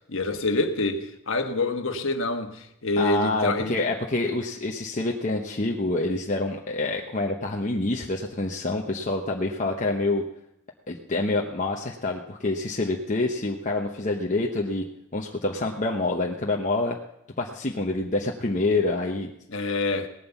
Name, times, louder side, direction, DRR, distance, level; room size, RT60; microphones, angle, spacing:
voice 1, 0.1-3.9 19.5-20.1, left 2 dB, 60° left, 6 dB, 1.4 m, -27 dB
voice 2, 3.0-10.2 10.9-14.8 15.1-17.0 17.4-19.3, left 2 dB, 35° left, 0 dB, 1.0 m, -27 dB
18.0 x 9.4 x 7.1 m, 0.79 s
head